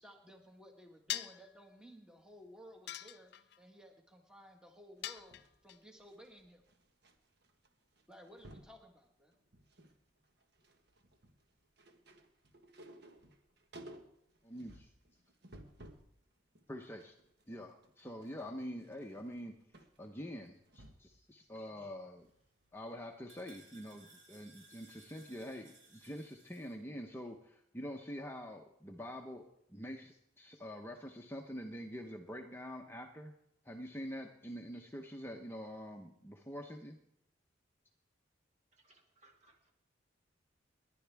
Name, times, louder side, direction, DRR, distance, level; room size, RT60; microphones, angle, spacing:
voice 1, 0.0-6.6 8.1-9.3, equal, 5° right, 2 dB, 1.6 m, -57 dB
sound 1, 1.1-1.5 2.9-3.6 5.0-5.8, left 12 dB, 55° left, 0.5 m, -41 dB
sound 2, 5.0-7.1 7.4-7.7 8.0-8.8 9.3-10.0 10.3-16.1 16.6-21.2 21.6-21.7, right 1 dB, 55° right, 1.4 m, -57 dB
voice 2, 14.4-14.9 16.7-17.2 17.5-19.6 20.0-22.3 22.7-33.3 33.6-37.0, equal, 10° left, 2 dB, 0.8 m, -46 dB
sound 3, 22.2-26.7, right 3 dB, 75° right, 7.1 m, -62 dB
voice 3, 38.8-39.7, right 2 dB, 35° right, 2 dB, 2.1 m, -66 dB
29.5 x 11.0 x 3.5 m, 0.78 s
head